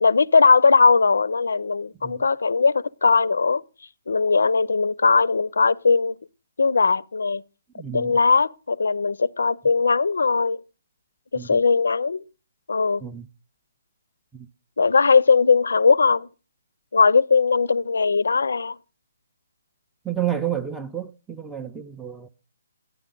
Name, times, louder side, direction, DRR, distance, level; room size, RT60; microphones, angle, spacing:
voice 1, 0.0-3.6 4.1-6.2 6.6-7.4 7.9-10.6 11.3-12.2 12.7-13.0 14.8-16.3 16.9-18.8, left 4 dB, 85° left, 0.5 m, -19 dB
voice 2, 7.8-8.1 11.3-11.6 13.0-13.3 14.3-14.5 20.0-22.3, right 10 dB, 5° right, 0.4 m, -30 dB
11.0 x 9.6 x 3.8 m
hypercardioid pair, 165°, 0 cm